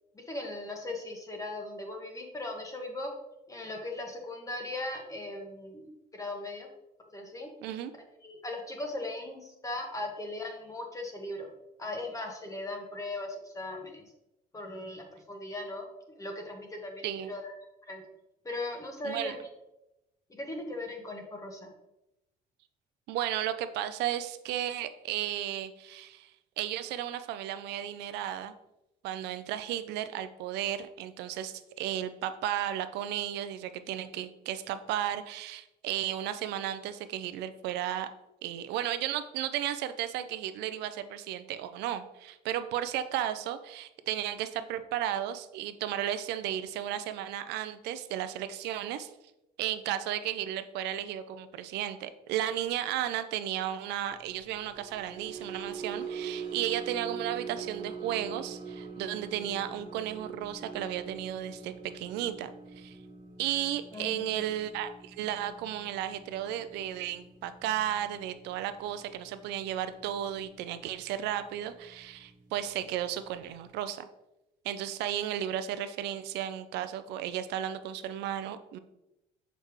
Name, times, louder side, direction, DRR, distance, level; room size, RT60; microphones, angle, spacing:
voice 1, 0.1-3.1 3.5-6.7 7.1-7.5 8.2-11.5 11.8-14.0 14.5-15.8 16.2-17.5 17.9-18.0 18.4-19.3 20.3-21.7 63.9-64.4, left 2 dB, 20° left, 2 dB, 1.2 m, -38 dB
voice 2, 7.6-7.9 17.0-17.3 19.0-19.4 23.1-26.3 26.6-28.5 29.0-38.1 38.4-49.1 49.6-62.5 62.8-63.0 63.4-74.1 74.6-78.8, right 11 dB, 85° right, 11 dB, 0.5 m, -34 dB
sound 1, 54.4-70.8 71.2-71.5 71.8-72.0, right 5 dB, 50° right, 1.4 m, -43 dB
6.6 x 5.0 x 3.1 m, 0.90 s
cardioid pair, 110°, 17 cm